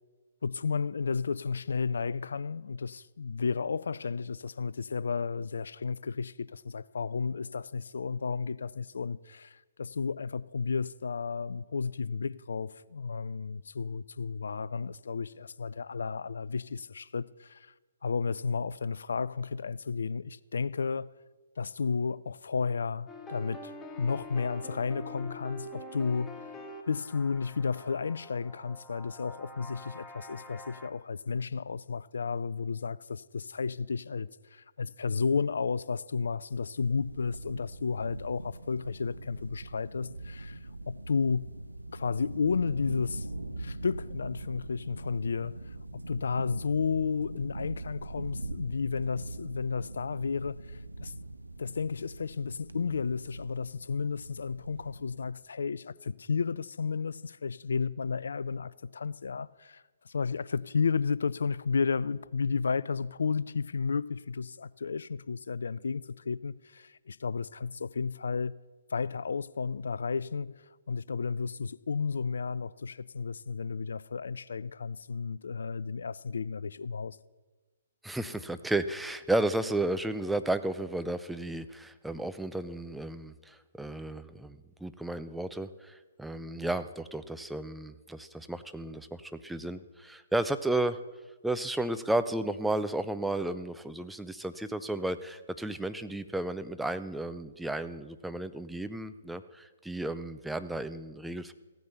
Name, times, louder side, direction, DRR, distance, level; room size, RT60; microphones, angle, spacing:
voice 1, 0.4-17.7 18.0-21.1 21.6-23.7 24.0-26.4 26.9-40.6 40.9-41.6 41.9-43.3 43.6-51.1 51.6-68.6 68.9-77.2, left 5 dB, 65° left, 0.4 m, -32 dB
sound 1, 23.1-30.9, left 1 dB, 15° left, 1.2 m, -46 dB
sound 2, 36.8-55.3, right 2 dB, 90° right, 0.8 m, -42 dB
voice 2, 78.0-91.0 91.4-101.5, right 2 dB, 5° right, 0.6 m, -33 dB
15.5 x 9.4 x 7.0 m
figure-of-eight pair, 130°, 0 cm